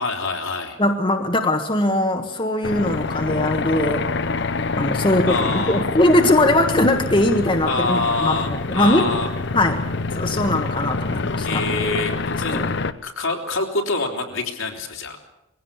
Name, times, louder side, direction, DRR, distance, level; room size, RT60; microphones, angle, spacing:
voice 1, 0.0-0.8 5.3-5.8 7.7-9.3 11.4-12.6 13.0-15.2, left 3 dB, 75° left, 2 dB, 3.7 m, -25 dB
voice 2, 0.8-4.1 4.8-9.1 9.5-9.8 10.2-11.7 12.5-12.7, left 1 dB, 25° left, 4 dB, 1.4 m, -20 dB
sound 1, 2.6-12.9, left 3 dB, 55° left, 0.9 m, -26 dB
21.5 x 16.5 x 8.7 m, 0.90 s
head